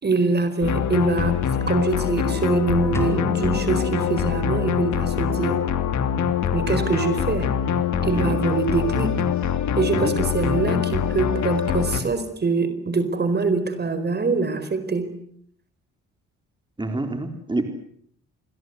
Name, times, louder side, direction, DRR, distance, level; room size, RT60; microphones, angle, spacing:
voice 1, 0.0-1.4 1.7-5.7 6.5-7.5 8.0-9.2 9.8-15.1, right 4 dB, 35° right, 11 dB, 4.4 m, -24 dB
sound 1, 0.6-12.0, left 8 dB, 70° left, 3.0 m, -24 dB
sound 2, 2.9-5.0, left 1 dB, 10° left, 5.5 m, -34 dB
voice 2, 8.1-8.4 10.0-10.1 16.8-17.6, right 2 dB, 15° right, 6 dB, 4.1 m, -27 dB
29.0 x 21.5 x 8.0 m, 0.65 s
cardioid pair, 90°, 30 cm